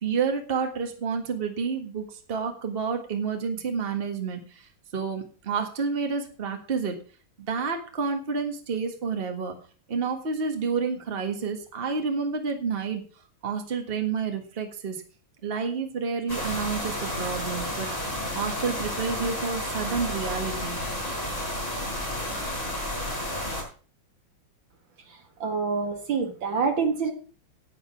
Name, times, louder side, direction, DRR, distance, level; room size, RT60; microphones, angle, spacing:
voice 1, 0.0-4.7 4.9-7.0 7.4-9.6 9.9-13.0 13.4-15.0 15.4-17.9 18.3-20.8, right 5 dB, 30° right, 5 dB, 1.7 m, -29 dB
sound 1, 16.3-23.6, left 1 dB, 15° left, 4.6 m, -31 dB
voice 2, 25.4-27.1, right 5 dB, 65° right, 5 dB, 2.4 m, -26 dB
9.3 x 9.2 x 6.0 m, 0.39 s
omnidirectional pair, 2.2 m